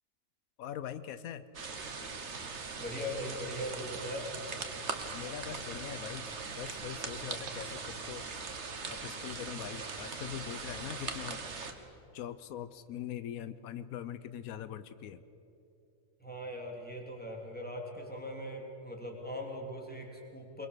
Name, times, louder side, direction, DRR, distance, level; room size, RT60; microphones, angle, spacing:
voice 1, 0.6-1.4 5.1-6.2 6.6-8.3 8.9-11.4 12.1-15.2, left 10 dB, 85° left, 13 dB, 1.2 m, -42 dB
sound 1, 1.5-11.7, right 4 dB, 55° right, 1.7 m, -40 dB
voice 2, 2.8-4.3 16.2-20.7, left 1 dB, 5° left, 0 dB, 3.2 m, -40 dB
22.5 x 22.5 x 6.8 m, 3.0 s
omnidirectional pair, 1.4 m